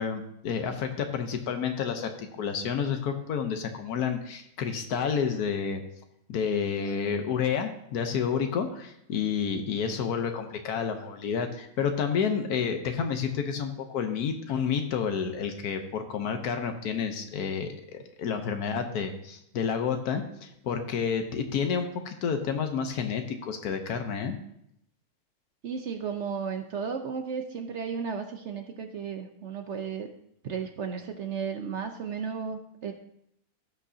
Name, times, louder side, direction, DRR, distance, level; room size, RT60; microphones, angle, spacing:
voice 1, 0.0-5.8 6.3-24.4, left 6 dB, 85° left, 6 dB, 1.4 m, -30 dB
voice 2, 25.6-30.1 30.4-32.9, right 6 dB, 60° right, 5 dB, 0.9 m, -34 dB
16.5 x 6.3 x 2.7 m, 0.76 s
omnidirectional pair, 1.6 m